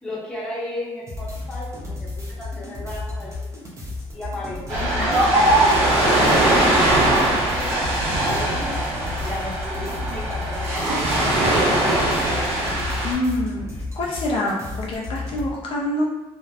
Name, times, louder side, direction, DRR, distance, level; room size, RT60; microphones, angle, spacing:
voice 1, 0.0-3.5 4.1-8.7 9.2-12.0, left 1 dB, 5° left, -7 dB, 0.8 m, -35 dB
sound 1, 1.1-15.5, left 2 dB, 30° right, 0.6 m, -33 dB
Ocean, 4.7-13.1, right 1 dB, 85° right, 0.8 m, -20 dB
voice 2, 4.8-5.2 13.0-13.7 13.9-16.0, left 1 dB, 60° left, -3 dB, 0.4 m, -26 dB
2.7 x 2.0 x 2.3 m, 1.1 s
cardioid pair, 135°, 10 cm